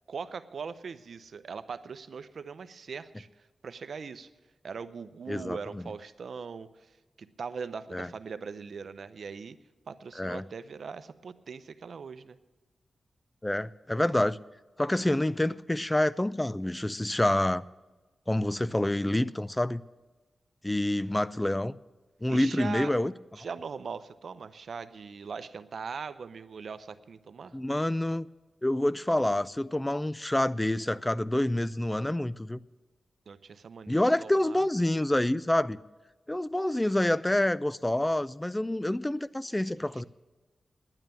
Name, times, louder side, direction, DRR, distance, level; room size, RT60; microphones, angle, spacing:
voice 1, 0.1-4.3 4.6-9.6 9.9-12.4 22.3-23.0 23.4-27.6 33.3-34.7 39.9-40.0, right 5 dB, 75° right, 0.6 m, -41 dB
voice 2, 5.3-5.8 7.9-8.1 10.2-10.4 13.4-14.4 14.8-17.6 18.3-19.8 20.6-21.7 22.2-23.1 27.5-28.3 28.6-32.6 33.9-35.8 36.3-40.0, left 1 dB, 15° left, 0.4 m, -27 dB
10.5 x 9.0 x 8.9 m
cardioid pair, 75°, 0 cm